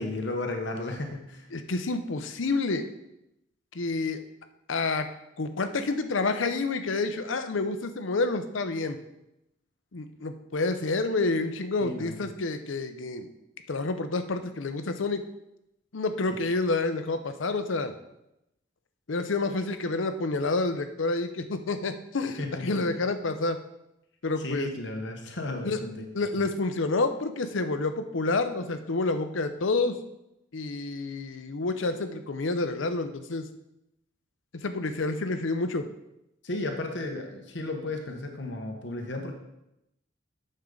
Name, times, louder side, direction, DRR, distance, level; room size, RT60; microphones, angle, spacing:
voice 1, 0.0-1.5 11.8-12.3 22.4-22.9 24.4-26.1 26.3-26.5 36.4-39.3, left 2 dB, 65° left, 3 dB, 1.0 m, -34 dB
voice 2, 1.5-2.9 3.7-4.2 4.7-5.1 5.4-9.0 9.9-13.3 13.7-15.2 15.9-17.9 19.1-23.6 24.2-24.7 25.6-25.8 26.1-30.0 30.5-33.5 34.6-35.9, left 3 dB, 80° left, 9 dB, 0.7 m, -28 dB
8.9 x 6.7 x 3.8 m, 0.87 s
head